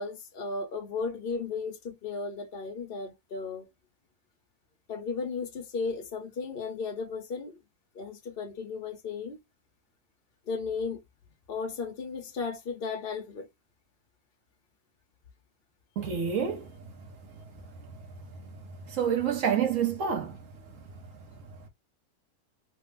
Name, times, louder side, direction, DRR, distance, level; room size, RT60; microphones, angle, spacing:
voice 1, 0.0-3.7 4.9-7.6 7.9-9.4 10.5-11.0 11.5-13.5, left 4 dB, 45° left, 1.0 m, -35 dB
voice 2, 16.0-17.1 17.3-17.4 17.9-18.0 18.8-20.4 20.7-20.8, right 7 dB, 70° right, 1.1 m, -29 dB
3.3 x 2.1 x 3.3 m
omnidirectional pair, 1.5 m